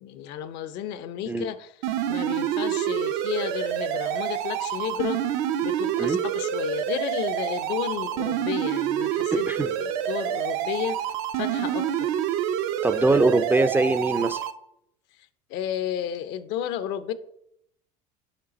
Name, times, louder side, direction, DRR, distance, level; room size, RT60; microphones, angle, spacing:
voice 1, 0.0-5.2 5.6-11.0 11.4-12.1 15.5-17.1, left 10 dB, 65° left, 0.5 m, -32 dB
sound 1, 1.8-14.5, right 10 dB, 75° right, 0.5 m, -27 dB
voice 2, 9.3-9.7 12.8-14.4, right 2 dB, 10° right, 0.3 m, -22 dB
5.2 x 4.7 x 4.0 m
supercardioid pair, 90°, 19 cm